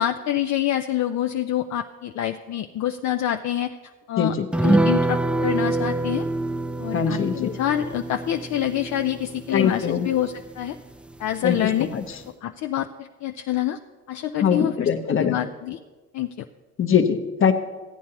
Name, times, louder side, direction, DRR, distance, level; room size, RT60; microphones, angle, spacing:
voice 1, 0.0-3.8 4.1-6.2 6.8-10.8 11.2-11.9 12.4-13.8 14.1-15.8 16.1-16.3, left 11 dB, 65° left, 6 dB, 0.5 m, -26 dB
sound 1, 4.5-11.3 11.6-11.7 12.1-12.2, right 2 dB, 5° right, 0.3 m, -26 dB
voice 2, 6.9-7.5 9.5-10.1 11.4-11.6 11.9-12.0 14.4-15.4 16.8-17.5, left 7 dB, 45° left, 6 dB, 0.9 m, -22 dB
15.5 x 9.5 x 2.9 m, 1.3 s
cardioid pair, 90°, 30 cm